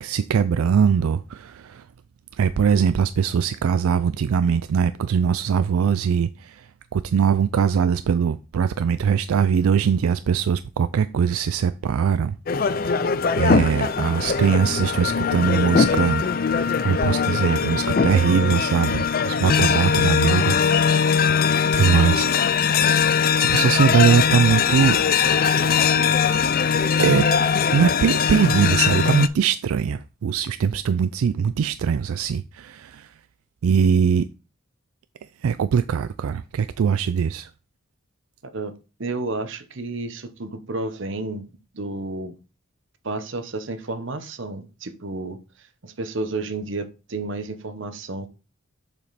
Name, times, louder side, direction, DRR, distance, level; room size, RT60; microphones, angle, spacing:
voice 1, 0.0-1.8 2.4-12.4 12.8-16.2 16.8-20.6 21.7-25.0 27.0-27.3 27.7-33.1 33.6-34.3 35.4-37.5, right 7 dB, 85° right, 0.4 m, -21 dB
sound 1, 12.5-29.3, left 6 dB, 45° left, 0.4 m, -21 dB
voice 2, 39.0-41.5 41.7-42.3 43.0-45.4 45.8-48.3, right 2 dB, 60° right, 0.9 m, -31 dB
7.1 x 5.2 x 4.0 m
head